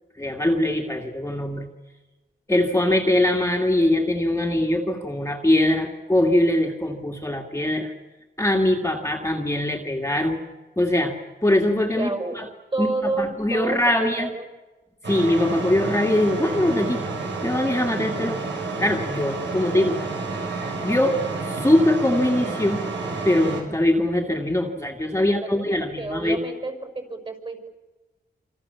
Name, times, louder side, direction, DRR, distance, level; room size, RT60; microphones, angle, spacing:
voice 1, 0.2-1.7 2.5-7.9 8.4-10.4 10.8-11.2 11.4-12.5 12.8-14.3 15.1-17.0 17.4-18.4 18.8-20.0 20.8-22.8 23.2-26.4, left 1 dB, 15° left, 1 dB, 2.4 m, -22 dB
voice 2, 11.9-12.4 12.7-14.5 25.2-27.7, right 2 dB, 30° right, 6 dB, 6.0 m, -30 dB
sound 1, 15.0-23.6, right 3 dB, 80° right, 5.9 m, -30 dB
27.5 x 27.5 x 7.2 m, 1.2 s
wide cardioid pair, 115°, 19 cm